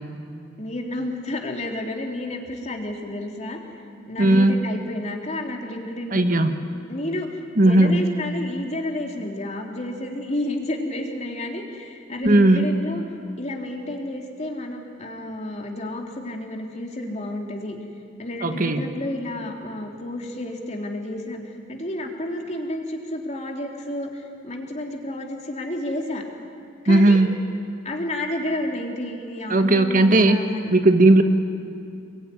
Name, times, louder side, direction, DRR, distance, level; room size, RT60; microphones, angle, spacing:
voice 1, 0.6-3.6 4.1-6.2 6.9-13.0 13.4-17.8 18.2-21.4 21.7-26.2 26.8-27.2 27.8-30.7, left 1 dB, 40° left, 1 dB, 3.4 m, -31 dB
voice 2, 4.2-4.6 6.1-6.6 7.6-8.0 12.2-12.7 18.4-18.9 26.9-27.3 29.5-30.4 30.7-31.2, right 2 dB, 45° right, 7 dB, 1.4 m, -16 dB
27.0 x 22.0 x 10.0 m, 2.5 s
head